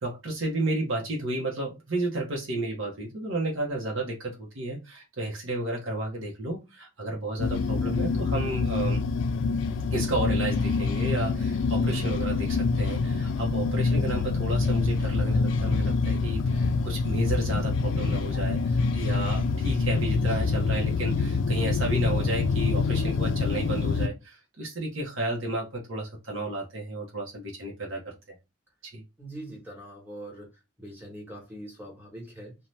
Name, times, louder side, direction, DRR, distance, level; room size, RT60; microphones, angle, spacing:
voice 1, 0.0-9.0 9.9-28.1 28.8-29.0, right 2 dB, 75° right, 0.7 m, -32 dB
sound 1, 7.4-24.1, left 4 dB, 70° left, 0.3 m, -26 dB
voice 2, 29.2-30.5 30.8-32.6, right 1 dB, 10° right, 1.1 m, -42 dB
2.7 x 2.1 x 3.1 m
head